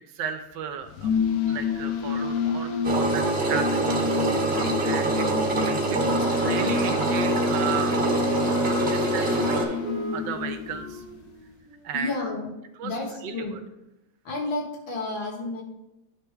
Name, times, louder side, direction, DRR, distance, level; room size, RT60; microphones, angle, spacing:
voice 1, 0.1-1.1 1.4-5.3 5.6-6.1 6.4-9.8 10.1-11.0 11.8-12.2 12.8-12.9 13.2-13.6, right 7 dB, 75° right, 8 dB, 1.2 m, -35 dB
sound 1, 0.8-11.3, left 5 dB, 70° left, 1.2 m, -28 dB
Engine, 2.8-9.6, right 3 dB, 40° right, 1.1 m, -25 dB
Wind instrument woodwind instrument, 5.8-12.6, right 2 dB, 55° right, 1.6 m, -39 dB
voice 2, 6.2-6.9 11.9-12.5 12.8-13.6 14.2-15.6, left 2 dB, 85° left, -1 dB, 2.3 m, -32 dB
9.9 x 3.3 x 4.7 m, 0.94 s
omnidirectional pair, 2.1 m